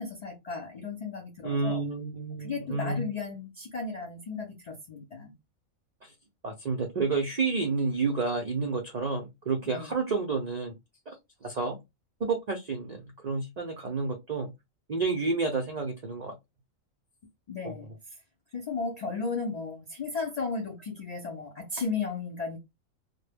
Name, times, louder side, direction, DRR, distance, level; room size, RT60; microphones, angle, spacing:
voice 1, 0.0-1.8 2.4-5.3 9.7-10.0 17.5-17.9 18.5-22.6, left 4 dB, 70° left, 0.4 m, -35 dB
voice 2, 1.4-3.1 6.0-6.1 6.4-10.8 11.1-11.2 11.4-11.8 12.2-14.5 14.9-16.3 17.6-17.7, right 4 dB, 70° right, 0.4 m, -30 dB
2.1 x 2.1 x 3.3 m
omnidirectional pair, 1.4 m